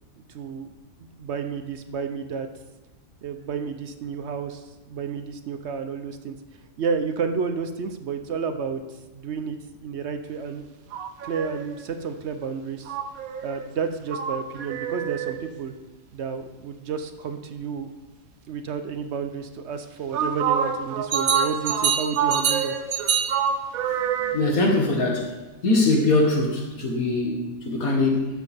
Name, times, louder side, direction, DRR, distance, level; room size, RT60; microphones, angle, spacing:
voice 1, 0.2-0.7 1.0-2.5 3.2-6.4 6.8-8.8 9.1-10.7 11.2-12.9 13.4-15.7 16.1-17.9 18.5-22.7, right 6 dB, 60° right, 8 dB, 0.9 m, -31 dB
sound 1, 10.9-11.8 12.9-15.5 20.1-24.6, right 7 dB, 85° right, 1.2 m, -26 dB
voice 2, 24.3-25.3 25.6-28.3, left 2 dB, 85° left, 1 dB, 2.0 m, -22 dB
12.5 x 7.5 x 3.5 m, 1.1 s
omnidirectional pair, 1.4 m